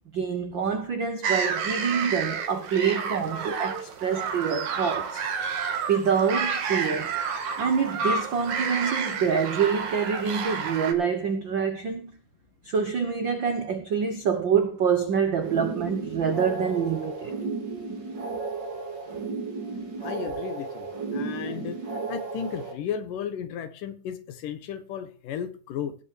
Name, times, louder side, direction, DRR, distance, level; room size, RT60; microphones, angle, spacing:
voice 1, 0.1-5.2 5.9-7.2 7.6-12.1 12.6-17.3, right 6 dB, 75° right, 1.0 m, -26 dB
sound 1, 1.2-10.9, right 6 dB, 60° right, 3.0 m, -30 dB
sound 2, 15.4-22.7, right 3 dB, 35° right, 2.9 m, -34 dB
voice 2, 20.0-21.8 22.1-26.0, left 8 dB, 75° left, 2.9 m, -34 dB
18.0 x 6.0 x 6.5 m
omnidirectional pair, 3.9 m